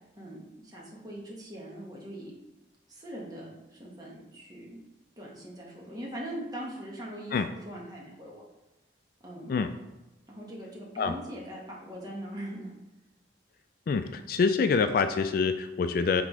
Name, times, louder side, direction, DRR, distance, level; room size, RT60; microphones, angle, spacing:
voice 1, 0.6-2.3 2.9-4.8 5.2-8.4 9.2-9.6 10.3-12.7, right 1 dB, 20° right, -3 dB, 1.5 m, -41 dB
voice 2, 13.9-16.2, left 5 dB, 50° left, 9 dB, 0.3 m, -26 dB
6.0 x 3.6 x 4.7 m, 1.0 s
head